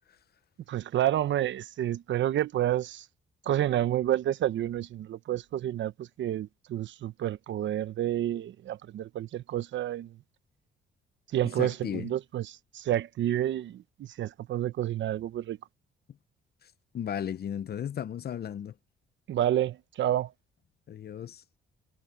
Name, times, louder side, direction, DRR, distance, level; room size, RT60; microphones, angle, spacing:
voice 1, 0.7-3.1 3.4-10.2 11.3-15.6 19.3-20.3, right 12 dB, 70° right, 1.0 m, -29 dB
voice 2, 11.6-12.1 16.6-18.7 20.9-21.4, left 9 dB, 55° left, 0.9 m, -35 dB
cardioid pair, 90°, 20 cm